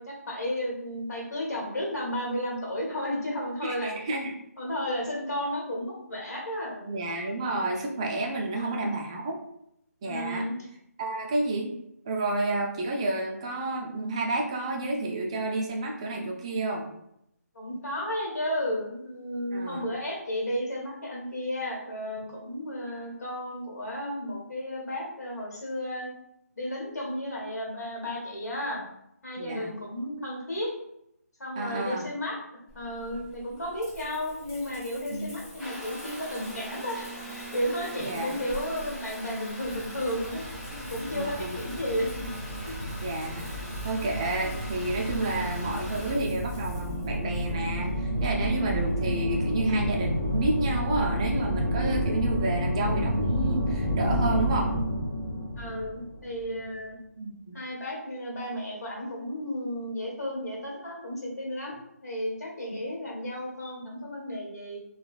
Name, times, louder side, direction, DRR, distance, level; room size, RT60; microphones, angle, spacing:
voice 1, 0.0-3.9 4.6-6.8 8.5-8.9 10.0-10.5 17.5-26.1 26.5-28.9 29.2-30.7 31.4-32.4 32.7-42.1 42.6-42.8 55.6-57.0 57.5-64.8, equal, 70° left, -2 dB, 1.3 m, -33 dB
voice 2, 3.6-4.3 6.9-9.4 10.0-10.5 11.0-11.7 12.1-16.9 19.5-19.8 29.4-29.7 31.6-32.1 35.1-35.3 38.0-38.4 41.1-41.5 43.0-43.5 43.8-54.7 57.2-57.6 62.7-62.8, right 2 dB, 20° right, 0 dB, 0.4 m, -30 dB
Water tap faucet / Bathtub (filling or washing) / Trickle dribble, 32.7-51.6, equal, 20° left, 1.0 m, -43 dB
sound 1, 39.7-56.6, equal, 45° left, 1.1 m, -30 dB
3.6 x 2.3 x 2.4 m, 0.79 s
figure-of-eight pair, 160°, 9 cm